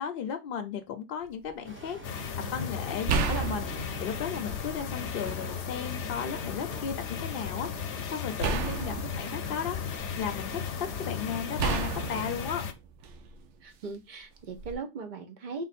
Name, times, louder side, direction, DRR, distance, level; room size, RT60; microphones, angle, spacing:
voice 1, 0.0-12.6, left 7 dB, 60° left, 0.7 m, -35 dB
sound 1, 1.2-1.5 3.1-4.9 5.4-6.3 8.4-10.4 11.6-13.5 14.5-14.8, right 5 dB, 85° right, 0.9 m, -32 dB
sound 2, 1.6-12.5, right 1 dB, 15° right, 0.7 m, -46 dB
sound 3, 2.0-12.7, left 7 dB, 85° left, 0.9 m, -36 dB
voice 2, 13.6-15.6, right 4 dB, 50° right, 0.8 m, -39 dB
3.6 x 2.6 x 4.1 m
omnidirectional pair, 1.2 m